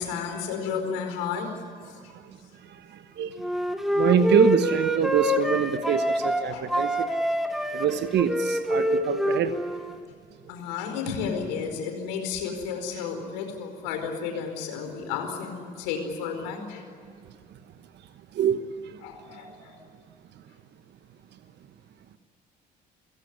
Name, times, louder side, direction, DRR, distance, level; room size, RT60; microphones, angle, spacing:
voice 1, 0.0-1.5 1.8-1.9 6.5-7.3 10.5-16.8 19.0-19.8, left 6 dB, 75° left, 5 dB, 4.7 m, -32 dB
voice 2, 2.7-3.4 3.9-7.1 7.7-9.5 18.3-19.0, right 8 dB, 55° right, 11 dB, 1.3 m, -25 dB
Wind instrument woodwind instrument, 3.4-6.4 6.7-10.0, equal, ahead, 3.1 m, -26 dB
29.5 x 17.5 x 9.9 m, 2.3 s
hypercardioid pair, 55°, 21 cm